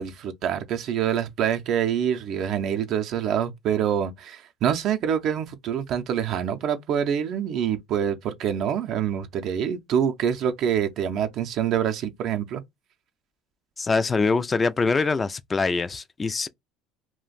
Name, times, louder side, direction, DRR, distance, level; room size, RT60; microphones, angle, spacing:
voice 1, 0.0-12.6, right 9 dB, 60° right, 0.5 m, -26 dB
voice 2, 13.8-16.5, left 4 dB, 25° left, 0.4 m, -24 dB
2.4 x 2.1 x 3.9 m
hypercardioid pair, 80°, 0 cm